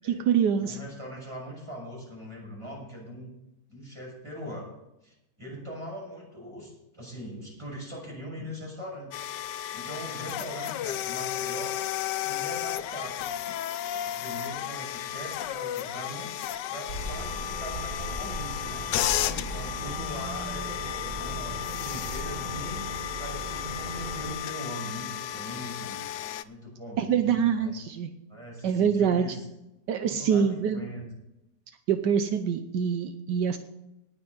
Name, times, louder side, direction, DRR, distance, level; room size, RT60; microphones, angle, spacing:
voice 1, 0.0-0.8 27.0-28.1 28.6-29.3 29.9-30.8 31.9-33.6, right 7 dB, 80° right, 8 dB, 1.4 m, -25 dB
voice 2, 0.6-3.3 3.7-4.7 5.0-11.8 12.1-13.3 14.0-16.3 16.7-22.9 23.2-26.1 26.4-27.7 28.3-29.5 30.0-31.0, equal, 15° right, -3 dB, 6.2 m, -41 dB
sound 1, 9.1-26.4, left 12 dB, 90° left, 1.3 m, -33 dB
sound 2, 16.9-24.3, right 1 dB, 50° right, 4.9 m, -38 dB
19.0 x 6.8 x 5.3 m, 0.90 s
omnidirectional pair, 1.8 m